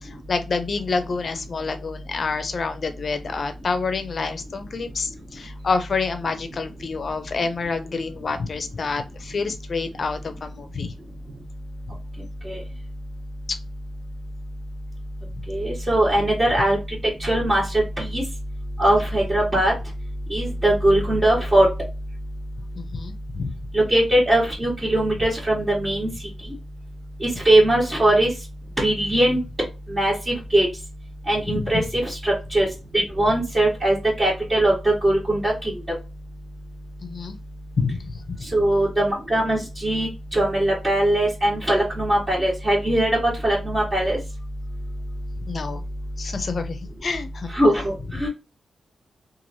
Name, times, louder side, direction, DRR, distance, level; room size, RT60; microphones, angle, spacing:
voice 1, 0.0-10.9 13.5-13.6 22.7-23.5 31.5-31.8 37.0-37.4 37.8-38.4 45.4-45.8 46.2-47.5, left 4 dB, 55° left, 0.5 m, -28 dB
voice 2, 15.5-16.8 17.2-18.2 18.8-19.7 20.3-21.7 23.7-26.1 27.2-28.3 28.8-29.4 29.9-30.7 31.3-32.7 32.9-35.7 38.5-44.2 47.5-48.3, right 1 dB, 30° right, 1.4 m, -20 dB
3.0 x 2.5 x 2.6 m
cardioid pair, 85°, 0 cm